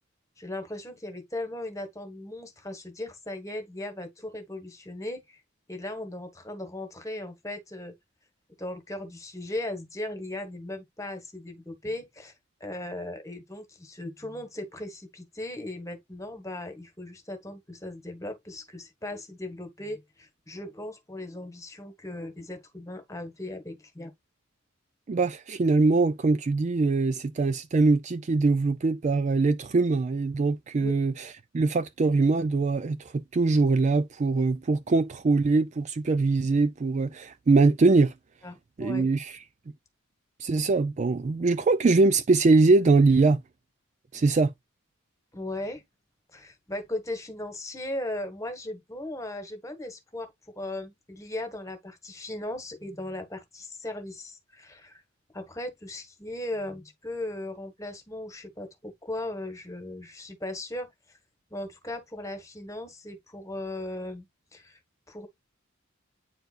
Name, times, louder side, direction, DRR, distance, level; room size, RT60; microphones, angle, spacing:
voice 1, 0.4-5.4 5.7-7.9 8.6-12.3 12.6-24.1 30.8-30.9 38.4-39.1 45.3-45.8 46.3-55.0 55.3-60.9 61.5-64.3 64.5-64.8 65.1-65.3, left 1 dB, 15° left, 1.4 m, -37 dB
voice 2, 25.1-31.3 31.5-38.1 38.8-39.4 40.4-43.4 44.1-44.5, right 3 dB, 35° right, 0.3 m, -22 dB
9.0 x 4.6 x 2.4 m
head